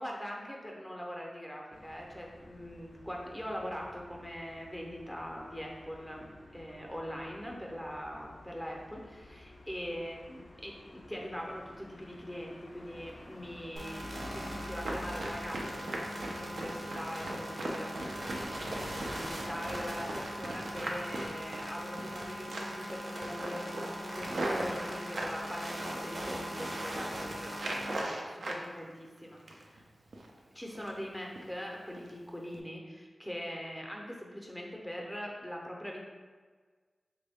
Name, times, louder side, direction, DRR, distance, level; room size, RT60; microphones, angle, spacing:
voice 1, 0.0-6.3 6.5-29.8 30.5-36.0, equal, ahead, -1 dB, 0.6 m, -42 dB
sound 1, 1.7-15.7, left 2 dB, 45° left, 0.3 m, -52 dB
sound 2, 13.8-28.0, equal, 55° right, 0.7 m, -40 dB
Run, 14.8-22.2 22.5-22.9 23.2-25.4 25.9-26.5 26.8-27.1 27.5-28.6 29.0-29.8 30.1-30.3 30.7-31.0 31.4-31.5 32.0-32.1 32.5-32.6, right 1 dB, 85° right, 0.4 m, -39 dB
3.5 x 2.6 x 3.4 m, 1.5 s
wide cardioid pair, 105°, 0 cm